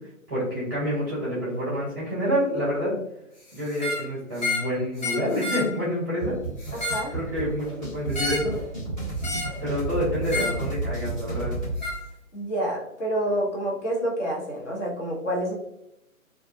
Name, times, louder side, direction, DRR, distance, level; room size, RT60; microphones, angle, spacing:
voice 1, 0.3-3.0 3.5-6.4 6.9-8.6 9.6-11.5, equal, 15° right, -8 dB, 0.6 m, -28 dB
sound 1, 3.7-4.1 4.4-4.7 5.0-5.7 6.6-7.1 8.1-8.5 9.2-9.6 10.3-10.6 11.8-12.0, left 2 dB, 30° left, 0.6 m, -30 dB
sound 2, 6.2-11.8, right 2 dB, ahead, 1.3 m, -32 dB
voice 2, 6.7-7.1 12.3-15.5, right 1 dB, 55° left, -2 dB, 1.1 m, -28 dB
2.3 x 2.3 x 2.7 m, 0.83 s
figure-of-eight pair, 140°, 43 cm